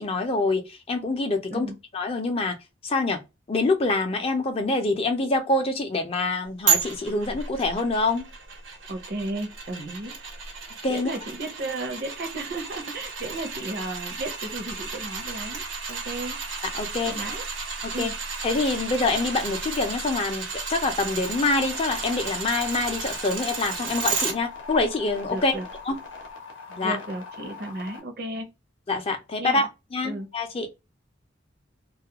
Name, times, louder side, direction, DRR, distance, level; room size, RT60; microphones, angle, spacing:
voice 1, 0.0-2.6 2.8-3.2 3.5-8.3 10.8-11.1 16.7-17.1 17.8-18.1 18.4-25.5 25.9-26.0 26.8-27.0 28.9-30.7, left 3 dB, 30° left, 0.5 m, -26 dB
sound 1, 6.7-24.3 24.8-24.9, right 5 dB, 90° right, 0.9 m, -32 dB
voice 2, 8.9-10.2 10.9-16.4 17.1-17.4 17.9-18.2 25.3-25.6 26.8-28.5 29.4-29.7 30.0-30.3, right 2 dB, 55° right, 0.6 m, -34 dB
sound 2, 21.2-28.0, left 4 dB, 75° left, 0.6 m, -42 dB
2.3 x 2.1 x 2.8 m
head